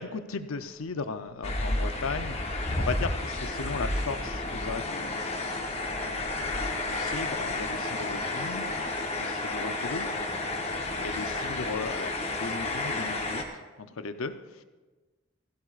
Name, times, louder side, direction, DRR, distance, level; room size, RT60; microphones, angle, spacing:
voice 1, 0.0-14.6, left 4 dB, 80° left, 10 dB, 0.7 m, -37 dB
sound 1, 1.4-13.4, left 2 dB, 30° left, 1.0 m, -31 dB
sound 2, 2.9-12.3, equal, 75° right, 2.7 m, -51 dB
16.0 x 15.5 x 2.5 m, 1.3 s
head